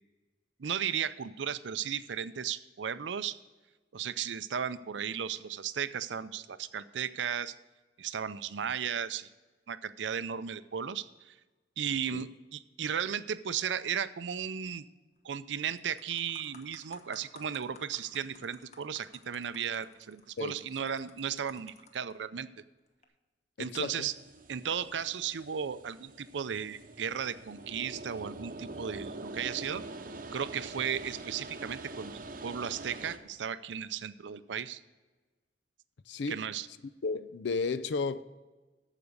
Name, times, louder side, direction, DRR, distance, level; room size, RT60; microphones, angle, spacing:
voice 1, 0.6-3.4 3.9-7.5 8.0-9.3 9.7-11.3 11.8-14.9 15.2-22.5 23.6-24.1 24.5-29.8 30.3-34.8 36.3-36.7, right 8 dB, 80° right, 0.5 m, -35 dB
sound 1, 15.2-15.4 15.8-22.2 22.9-23.1, left 4 dB, 40° left, 1.0 m, -56 dB
voice 2, 23.6-24.1 36.1-36.4 37.0-38.2, left 4 dB, 75° left, 0.5 m, -33 dB
sound 2, 24.0-33.2, right 2 dB, 50° right, 0.8 m, -45 dB
14.0 x 5.0 x 6.5 m
head